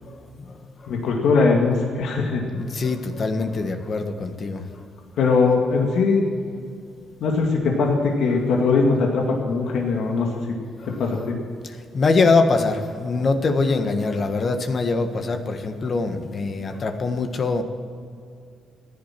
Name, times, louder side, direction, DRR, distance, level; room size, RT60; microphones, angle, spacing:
voice 1, 0.9-2.4 5.2-6.3 7.2-10.3 10.9-11.4, left 4 dB, 75° left, 1 dB, 2.1 m, -20 dB
voice 2, 2.6-4.6 11.9-17.6, left 3 dB, 45° left, 7 dB, 1.6 m, -23 dB
15.0 x 11.0 x 7.6 m, 2.3 s
cardioid pair, 90°, 0 cm